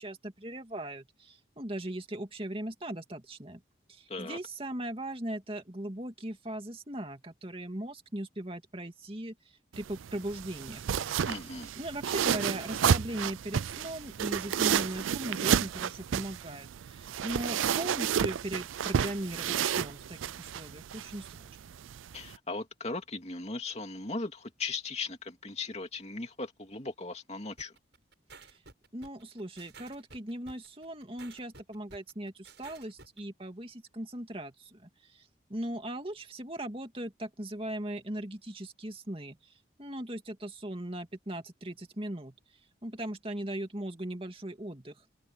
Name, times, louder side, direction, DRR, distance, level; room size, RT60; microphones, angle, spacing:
voice 1, 0.0-3.6 3.9-10.8 11.7-21.6 28.4-28.6 28.9-39.5 39.8-42.3 42.8-45.0, right 1 dB, 30° right, 2.5 m, -39 dB
voice 2, 4.1-4.4 11.2-11.7 22.1-27.7, left 3 dB, 35° left, 2.8 m, -38 dB
sound 1, 9.7-22.4, right 8 dB, 85° right, 0.4 m, -31 dB
sound 2, 27.6-33.2, right 4 dB, 60° right, 7.0 m, -53 dB
head